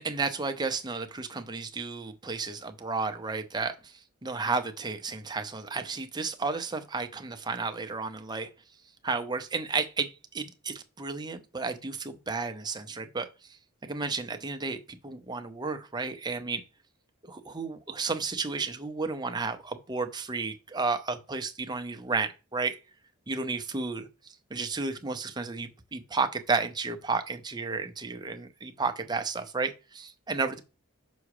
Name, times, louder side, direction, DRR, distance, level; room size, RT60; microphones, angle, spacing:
voice 1, 0.0-3.9 4.2-8.5 9.0-13.3 13.8-16.6 17.3-22.8 23.3-24.1 24.5-30.6, right 4 dB, 20° right, 0.7 m, -32 dB
6.1 x 4.9 x 4.8 m
head